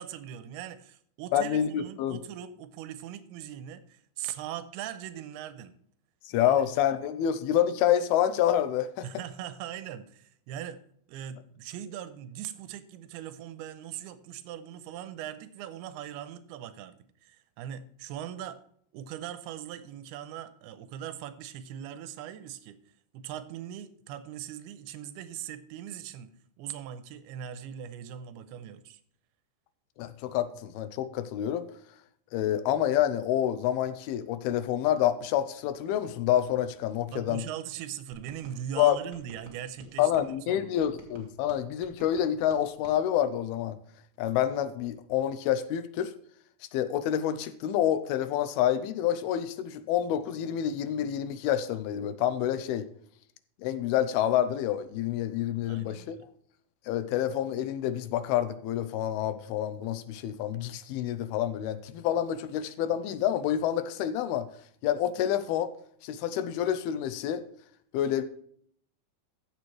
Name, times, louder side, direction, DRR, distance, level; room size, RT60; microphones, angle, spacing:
voice 1, 0.0-5.7 6.4-6.6 9.0-10.8 11.1-18.6 18.9-22.8 23.1-26.3 26.6-29.0 37.1-40.9 55.7-56.3, right 10 dB, 90° right, 13 dB, 2.8 m, -40 dB
voice 2, 1.3-2.2 6.3-9.0 30.0-31.7 32.3-37.4 38.8-39.0 40.0-43.8 44.2-46.1 46.7-52.9 53.6-56.2 56.9-64.5 64.8-65.7 66.0-67.4 67.9-68.2, left 10 dB, 85° left, 12 dB, 2.6 m, -28 dB
sound 1, 38.1-40.3 40.8-43.0, right 2 dB, 40° right, 1.9 m, -52 dB
14.5 x 6.9 x 3.2 m, 0.63 s
omnidirectional pair, 4.5 m